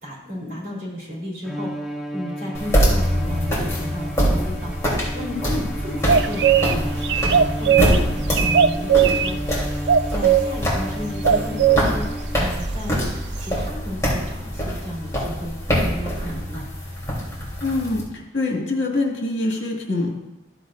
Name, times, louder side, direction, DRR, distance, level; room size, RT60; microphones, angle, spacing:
voice 1, 0.0-9.6 10.1-13.0 13.4-15.5 15.8-16.7, left 1 dB, 45° right, -5 dB, 3.7 m, -33 dB
Bowed string instrument, 1.4-12.6, equal, ahead, 2.4 m, -33 dB
sound 1, 2.5-18.0, equal, 15° left, 3.3 m, -24 dB
sound 2, 6.1-6.7 7.0-8.0 8.3-9.3 9.9-10.4 11.2-11.8, right 8 dB, 65° right, 0.4 m, -17 dB
voice 2, 17.6-18.0 18.3-20.1, left 2 dB, 75° left, 0 dB, 2.0 m, -24 dB
13.5 x 7.9 x 2.6 m, 1.0 s
head